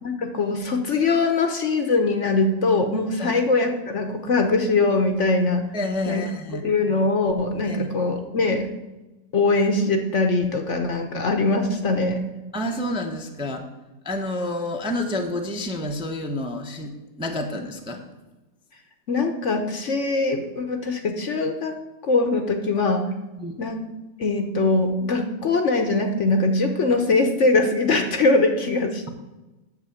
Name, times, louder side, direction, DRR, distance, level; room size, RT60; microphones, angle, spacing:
voice 1, 0.0-5.6 6.1-6.2 6.6-8.7 9.3-12.2 19.1-21.7 22.0-23.0 23.6-23.8 24.2-29.1, left 3 dB, 50° left, 6 dB, 1.1 m, -22 dB
voice 2, 5.7-6.6 7.6-7.9 12.5-13.6 14.0-16.9 17.2-18.0 23.4-23.5, left 1 dB, 5° right, 3 dB, 0.7 m, -29 dB
8.4 x 6.8 x 8.4 m, 1.1 s
omnidirectional pair, 1.8 m